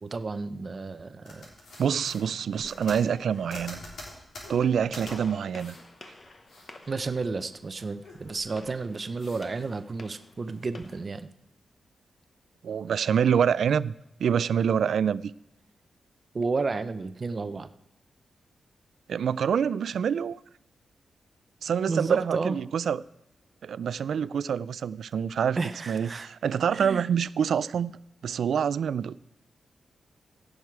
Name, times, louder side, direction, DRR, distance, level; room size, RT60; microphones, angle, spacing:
voice 1, 0.0-1.5 6.9-11.3 16.3-17.7 21.9-22.6 25.6-26.3 26.7-27.0, right 4 dB, 35° right, 0.6 m, -32 dB
sound 1, 1.3-5.1 5.6-5.8 6.2-7.5 7.9-8.7 9.2-9.4, left 2 dB, 85° left, 3.5 m, -45 dB
voice 2, 1.8-3.8 4.5-5.8 12.6-13.9 14.2-15.3 19.1-20.4 21.6-23.0 23.6-25.6 25.9-27.9 28.2-29.2, right 7 dB, 75° right, 0.3 m, -26 dB
Gunshot gunfire, 5.0-11.1, left 2 dB, 30° left, 0.9 m, -51 dB
16.0 x 6.4 x 4.6 m
wide cardioid pair, 145°, 0 cm